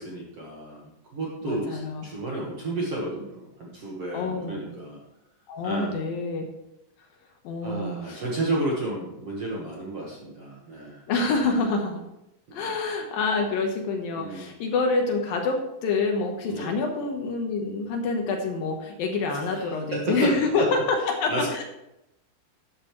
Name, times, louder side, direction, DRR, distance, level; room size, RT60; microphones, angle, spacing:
voice 1, 0.0-5.0 5.6-6.0 7.6-11.0 12.5-12.7 14.1-14.5 16.5-16.8 19.3-20.7 21.3-21.5, right 2 dB, 60° right, -3 dB, 1.6 m, -32 dB
voice 2, 1.4-2.1 4.1-4.7 5.5-6.5 7.4-8.2 11.1-12.0 12.5-21.6, left 3 dB, 65° left, 3 dB, 2.5 m, -27 dB
12.5 x 10.5 x 3.2 m, 0.87 s
omnidirectional pair, 5.1 m